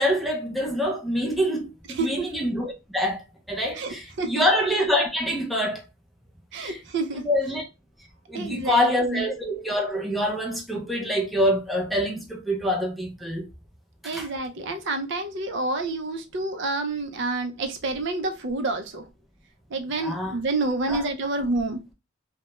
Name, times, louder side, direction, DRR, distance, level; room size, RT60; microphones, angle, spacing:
voice 1, 0.0-5.8 6.6-6.8 7.2-7.6 8.3-13.5 14.0-14.3 20.0-20.3 20.9-21.0, equal, ahead, 0.4 m, -25 dB
voice 2, 1.9-2.3 3.7-4.5 6.5-7.3 8.3-9.2 14.0-19.0 19.7-21.9, right 2 dB, 65° right, 0.5 m, -28 dB
2.3 x 2.1 x 2.9 m
head